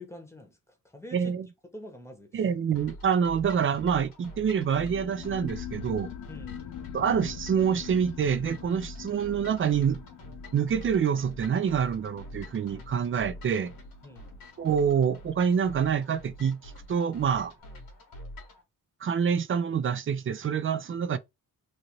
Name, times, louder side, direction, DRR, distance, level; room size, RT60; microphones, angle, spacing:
voice 1, 0.0-1.4 1.7-2.5 6.3-6.9 14.0-14.4, left 1 dB, 10° left, 1.0 m, -47 dB
voice 2, 1.1-1.5 2.3-6.1 6.9-10.0 10.5-13.7 14.6-17.5 19.0-21.2, right 7 dB, 35° right, 0.4 m, -26 dB
sound 1, 2.8-18.6, left 1 dB, 80° left, 1.2 m, -46 dB
sound 2, 4.6-15.7, left 9 dB, 60° left, 0.5 m, -44 dB
2.7 x 2.6 x 3.0 m
cardioid pair, 75°, 35 cm